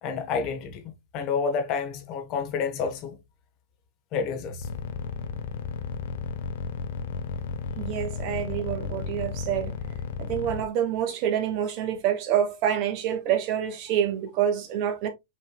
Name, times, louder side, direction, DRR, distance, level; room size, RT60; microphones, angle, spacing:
voice 1, 0.0-3.2 4.1-4.7, left 5 dB, 40° left, 1.1 m, -29 dB
sound 1, 4.6-10.7, left 7 dB, 65° left, 0.8 m, -33 dB
voice 2, 7.8-9.7 10.2-15.1, right 9 dB, 45° right, 1.2 m, -27 dB
5.5 x 3.3 x 2.3 m
hypercardioid pair, 130°, 0 cm